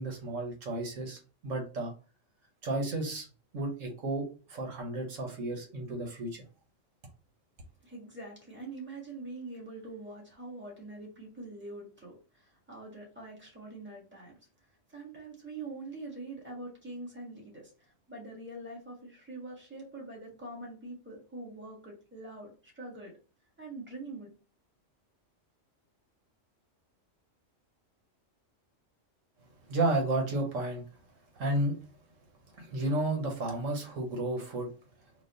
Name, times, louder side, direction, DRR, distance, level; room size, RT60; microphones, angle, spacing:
voice 1, 0.0-1.9 2.6-3.3 3.5-6.4 29.7-30.8 31.3-31.8 32.6-34.7, right 2 dB, 85° right, 1.6 m, -32 dB
voice 2, 7.8-23.1 23.6-24.3, right 2 dB, 10° right, 1.6 m, -44 dB
4.1 x 2.9 x 4.0 m
omnidirectional pair, 1.3 m